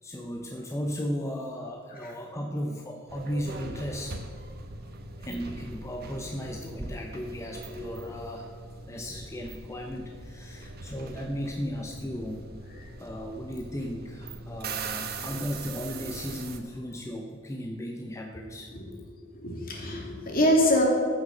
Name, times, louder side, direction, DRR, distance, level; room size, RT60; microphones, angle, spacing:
voice 1, 0.0-4.2 5.2-8.5 8.9-12.4 13.0-18.7, equal, 15° left, 2 dB, 0.8 m, -35 dB
sound 1, 3.1-16.6, right 3 dB, 50° right, 1.1 m, -41 dB
voice 2, 19.3-20.8, left 1 dB, 45° left, -1 dB, 2.7 m, -25 dB
14.5 x 6.4 x 6.5 m, 2.3 s
head